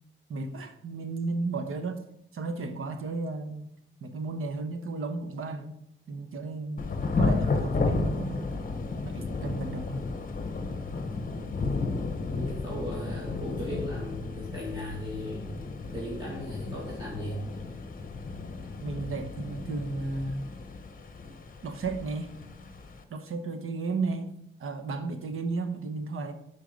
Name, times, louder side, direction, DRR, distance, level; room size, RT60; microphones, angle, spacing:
voice 1, 0.3-2.1 2.3-3.7 4.0-5.8 6.1-6.9 7.2-8.5 9.0-10.1 18.8-20.5 21.6-22.3 23.1-24.3 24.6-26.3, right 3 dB, 90° right, 1.0 m, -33 dB
Thunder / Rain, 6.8-23.0, left 3 dB, 40° left, 0.9 m, -33 dB
voice 2, 12.0-15.5 15.9-17.4, equal, 20° right, 2.2 m, -37 dB
11.5 x 4.6 x 5.1 m
wide cardioid pair, 140°, 21 cm